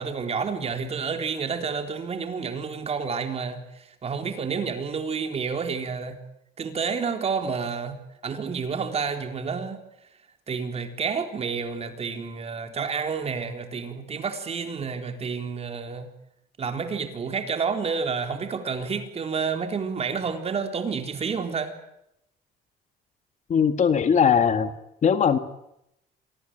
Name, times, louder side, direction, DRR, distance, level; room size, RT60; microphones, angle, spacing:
voice 1, 0.0-6.2 6.6-9.8 10.5-16.1 16.6-21.7, right 5 dB, 35° right, 3.9 m, -29 dB
voice 2, 23.5-24.7 25.0-25.4, left 7 dB, 45° left, 1.9 m, -20 dB
27.5 x 19.5 x 9.1 m
cardioid pair, 110°, 17 cm